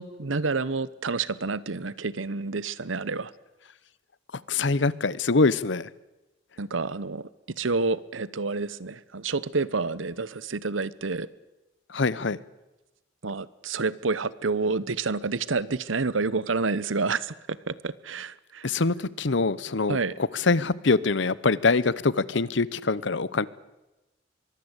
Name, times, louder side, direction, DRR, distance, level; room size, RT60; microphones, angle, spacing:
voice 1, 0.0-3.3 6.6-11.3 13.2-18.7 19.9-20.1, right 4 dB, 85° right, 19 dB, 1.0 m, -29 dB
voice 2, 4.5-5.9 11.9-12.4 18.6-20.0 20.3-23.5, left 3 dB, 65° left, 19 dB, 0.9 m, -24 dB
24.0 x 22.5 x 8.2 m, 1.0 s
head